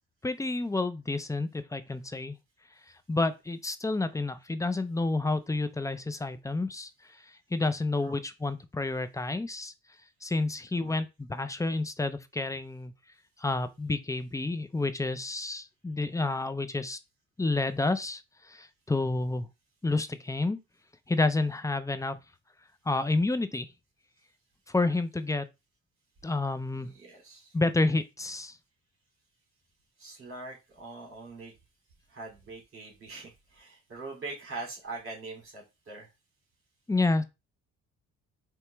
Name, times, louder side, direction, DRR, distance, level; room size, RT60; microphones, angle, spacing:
voice 1, 0.2-2.4 3.1-6.9 7.5-9.7 10.2-12.9 13.4-17.0 17.4-19.5 19.8-20.6 21.1-22.2 22.9-23.7 24.7-25.5 26.2-26.9 27.5-28.6 36.9-37.2, left 2 dB, 10° left, 0.5 m, -29 dB
voice 2, 26.7-27.5 30.0-31.5 32.1-36.1, right 3 dB, 45° right, 2.9 m, -43 dB
4.2 x 3.0 x 3.4 m
cardioid pair, 90°, 30 cm